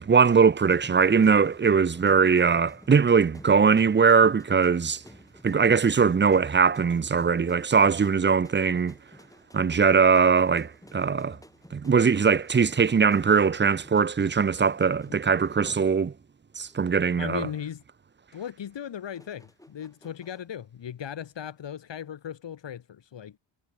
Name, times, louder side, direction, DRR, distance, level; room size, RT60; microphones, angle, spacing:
voice 1, 0.1-5.0 5.4-8.9 9.5-11.4 11.7-16.1 16.6-17.5, right 5 dB, 20° right, 0.7 m, -21 dB
sound 1, 0.7-16.3 16.6-16.9 19.2-20.5, left 1 dB, 5° left, 7.2 m, -52 dB
voice 2, 17.2-17.8 18.3-23.4, left 9 dB, 60° left, 5.8 m, -37 dB
cardioid pair, 95°, 49 cm